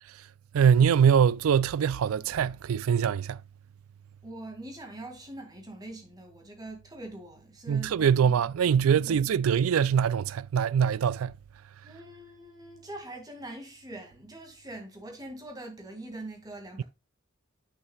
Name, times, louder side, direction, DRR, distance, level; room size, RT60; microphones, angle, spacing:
voice 1, 0.5-3.4 7.7-11.3, right 7 dB, 90° right, 0.4 m, -23 dB
voice 2, 4.2-8.3 8.9-9.2 11.8-16.8, right 1 dB, 20° right, 2.0 m, -43 dB
8.2 x 6.3 x 2.3 m
head